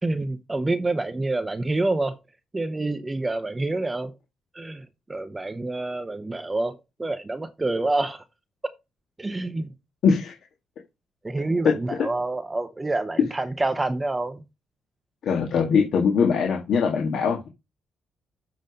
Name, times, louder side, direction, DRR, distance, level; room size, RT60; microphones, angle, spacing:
voice 1, 0.0-2.2 2.5-4.1 4.5-4.8 5.1-8.2 9.2-9.7 11.2-14.4, right 2 dB, 20° right, 0.9 m, -27 dB
voice 2, 10.0-10.4 15.2-17.5, left 6 dB, 65° left, 1.7 m, -22 dB
7.7 x 5.1 x 5.2 m
cardioid pair, 90°, 0 cm